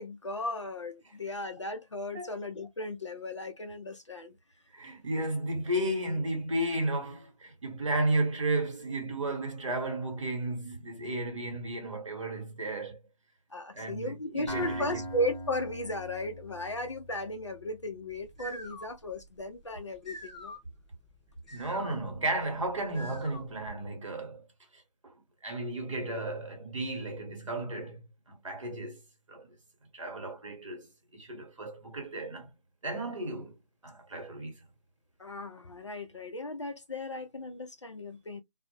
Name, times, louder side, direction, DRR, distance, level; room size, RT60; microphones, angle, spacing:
voice 1, 0.0-4.4 13.5-20.5 35.2-38.4, left 1 dB, 45° left, 0.4 m, -36 dB
voice 2, 4.7-13.0 13.7-15.0 21.5-24.4 24.7-25.1 25.4-28.0 28.3-29.0 29.3-29.6 29.9-32.5 32.8-33.5 33.8-34.6, right 1 dB, 50° right, 0.9 m, -33 dB
Acoustic guitar, 14.5-18.3, equal, 10° left, 0.9 m, -41 dB
sound 1, 18.1-23.7, left 1 dB, 10° right, 0.5 m, -47 dB
2.1 x 2.0 x 2.9 m
figure-of-eight pair, 165°, 21 cm